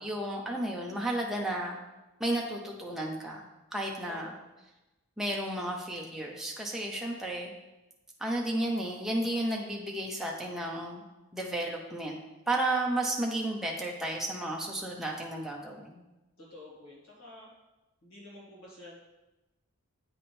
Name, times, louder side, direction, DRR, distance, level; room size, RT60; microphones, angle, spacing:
voice 1, 0.0-1.8 2.2-4.3 5.2-7.5 8.2-11.0 11.3-12.2 12.5-16.0, right 1 dB, ahead, -2 dB, 0.6 m, -33 dB
voice 2, 16.4-17.5 18.0-19.0, left 1 dB, 60° left, -6 dB, 2.1 m, -49 dB
8.6 x 3.6 x 4.2 m, 1.0 s
head